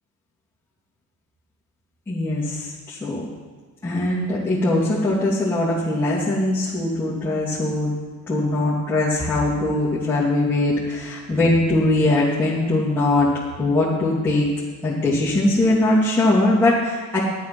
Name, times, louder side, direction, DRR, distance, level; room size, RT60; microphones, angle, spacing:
voice 1, 2.1-3.2 3.8-7.9 8.3-13.3 13.6-14.5 14.8-17.2, left 2 dB, 5° left, -11 dB, 2.5 m, -21 dB
11.5 x 9.5 x 6.1 m, 1.5 s
cardioid pair, 160°, 34 cm